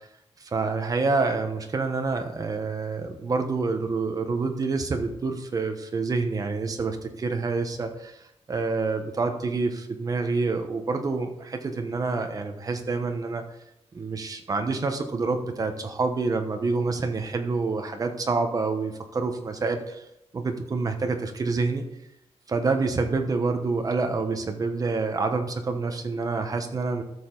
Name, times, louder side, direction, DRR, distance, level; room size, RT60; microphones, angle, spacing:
voice 1, 0.5-8.2 8.5-13.4 13.9-20.0 20.3-21.8 22.5-27.0, right 3 dB, 35° right, 5 dB, 1.1 m, -27 dB
12.5 x 7.0 x 3.9 m, 0.85 s
wide cardioid pair, 180°, 11 cm